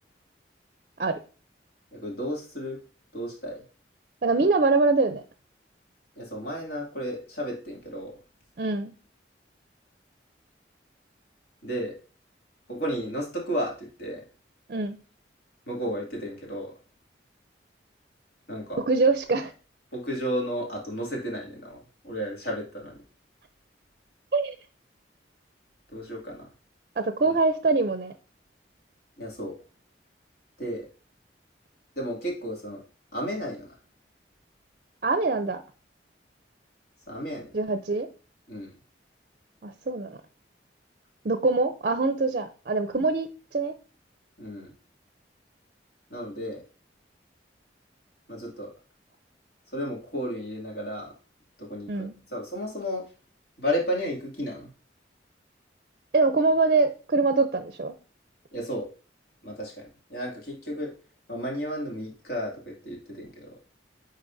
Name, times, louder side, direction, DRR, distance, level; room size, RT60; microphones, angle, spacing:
voice 1, 1.9-2.8 3.1-3.6 6.2-8.1 11.6-12.0 12.7-14.2 15.7-16.7 18.5-18.8 19.9-23.0 25.9-26.5 27.2-27.4 29.2-29.6 30.6-30.9 32.0-32.8 33.1-33.7 37.1-37.5 38.5-38.7 44.4-44.7 46.1-46.6 48.3-48.7 49.7-51.1 51.6-53.0 53.6-54.7 58.5-58.9 59.4-60.9 61.3-63.5, equal, 60° left, -1 dB, 2.4 m, -33 dB
voice 2, 4.2-5.2 8.6-8.9 14.7-15.0 18.9-19.5 24.3-24.6 27.0-28.1 35.0-35.6 37.5-38.1 39.6-40.2 41.2-43.7 51.9-52.1 56.1-57.9, right 3 dB, 50° right, 9 dB, 0.5 m, -24 dB
9.8 x 4.1 x 2.6 m, 0.36 s
head